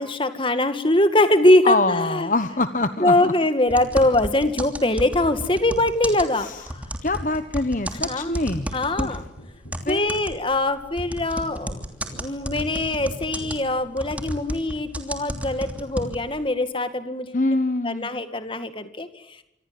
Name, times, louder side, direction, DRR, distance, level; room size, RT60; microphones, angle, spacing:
voice 1, 0.0-2.3 3.0-6.8 7.9-8.3 8.7-9.2 9.9-11.8 12.1-17.4 17.8-19.1, left 1 dB, 30° left, 10 dB, 2.1 m, -22 dB
voice 2, 1.6-3.3 6.3-6.7 7.0-8.7 9.0-9.2 9.8-10.1 17.3-18.1, left 2 dB, 45° left, 10 dB, 1.2 m, -24 dB
sound 1, 3.7-9.3 9.7-16.4, right 1 dB, 10° right, 2.9 m, -32 dB
Tap, 9.4-14.7 17.3-17.4, equal, 75° left, 3.3 m, -45 dB
28.5 x 25.0 x 7.7 m, 0.81 s
head